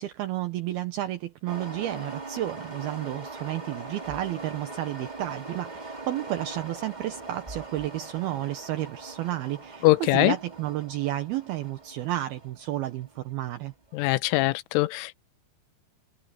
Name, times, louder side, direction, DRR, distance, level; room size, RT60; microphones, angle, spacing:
voice 1, 0.0-13.7, right 14 dB, 80° right, 2.2 m, -32 dB
sound 1, 1.5-14.2, right 3 dB, 25° right, 1.0 m, -41 dB
voice 2, 9.8-10.4 13.9-15.2, left 19 dB, 85° left, 3.2 m, -22 dB
omnidirectional pair, 5.7 m